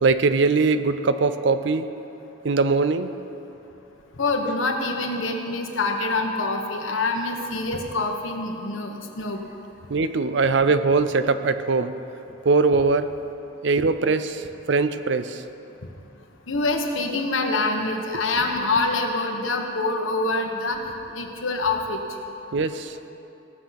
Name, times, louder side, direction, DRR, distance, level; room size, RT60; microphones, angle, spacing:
voice 1, 0.0-1.9 2.4-3.1 9.9-11.9 12.4-13.1 13.6-14.4 14.7-15.4 22.5-23.0, right 4 dB, 65° right, 11 dB, 0.5 m, -21 dB
voice 2, 4.2-9.4 16.5-20.8 21.1-22.0, left 3 dB, 85° left, 3 dB, 1.3 m, -25 dB
16.5 x 6.8 x 5.9 m, 2.9 s
head